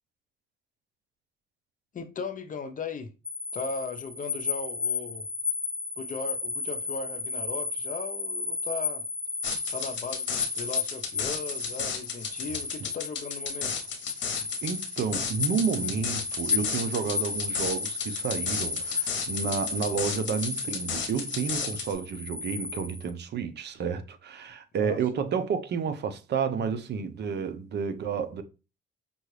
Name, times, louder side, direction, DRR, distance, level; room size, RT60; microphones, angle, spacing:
voice 1, 1.9-3.1 3.5-5.3 6.0-9.0 9.7-13.9 24.8-25.2, left 4 dB, 40° left, 0.7 m, -37 dB
sound 1, 3.2-23.1, left 4 dB, 5° right, 0.6 m, -33 dB
sound 2, 9.4-21.9, left 6 dB, 65° left, 0.9 m, -34 dB
voice 2, 14.6-28.4, right 6 dB, 60° right, 0.6 m, -30 dB
5.3 x 2.3 x 3.2 m
cardioid pair, 90°, 20 cm